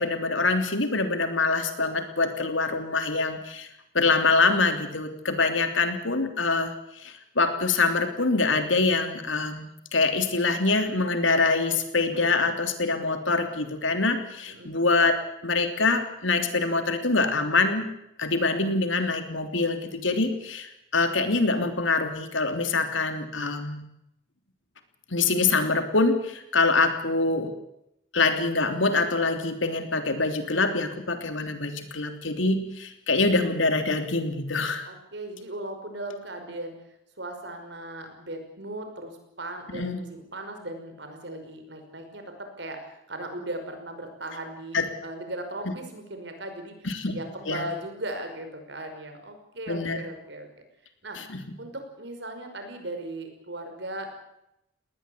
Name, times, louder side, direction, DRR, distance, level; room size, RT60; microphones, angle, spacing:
voice 1, 0.0-3.7 3.9-6.7 7.0-15.2 15.4-17.9 18.2-23.8 25.1-27.5 28.1-34.9 39.7-40.0 44.7-44.8 46.8-47.2 47.5-47.6 49.7-50.0 51.1-51.4, left 3 dB, 85° left, 7 dB, 3.3 m, -25 dB
voice 2, 34.8-36.8 37.2-46.9 47.1-50.5 51.0-51.2 51.6-54.1, right 1 dB, 65° right, 6 dB, 5.6 m, -37 dB
20.0 x 19.5 x 8.6 m, 0.82 s
head